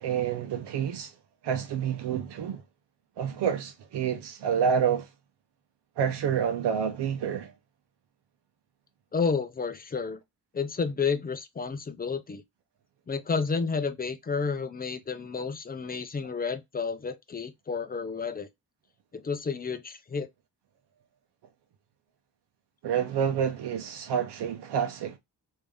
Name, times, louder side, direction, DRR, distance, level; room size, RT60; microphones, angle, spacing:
voice 1, 0.0-1.1 1.4-2.6 3.2-5.1 6.0-7.5 22.8-25.2, right 7 dB, 80° right, 0.8 m, -28 dB
voice 2, 9.1-10.2 10.5-12.4 13.1-18.5 19.1-20.3, left 5 dB, 25° left, 0.5 m, -31 dB
3.3 x 2.8 x 3.4 m
cardioid pair, 125°, 40 cm